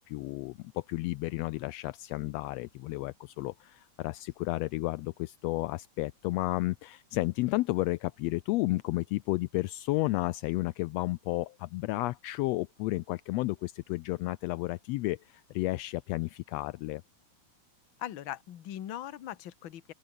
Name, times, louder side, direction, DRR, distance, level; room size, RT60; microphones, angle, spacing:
voice 1, 0.1-17.0, left 19 dB, 85° left, 1.5 m, -32 dB
voice 2, 18.0-19.9, left 12 dB, 55° left, 1.5 m, -40 dB
open air
omnidirectional pair, 3.5 m